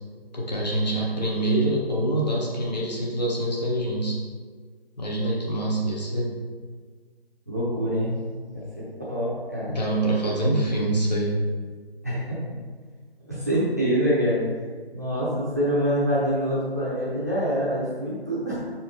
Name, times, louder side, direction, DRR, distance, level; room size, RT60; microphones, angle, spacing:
voice 1, 0.3-4.2 5.0-6.3 9.7-11.4, right 1 dB, 40° left, -3 dB, 1.3 m, -25 dB
voice 2, 7.5-8.1 8.5-9.8 12.0-12.4 13.2-14.4 14.9-18.6, equal, 15° right, -9 dB, 0.8 m, -25 dB
5.9 x 4.4 x 4.1 m, 1.5 s
figure-of-eight pair, 170°, 31 cm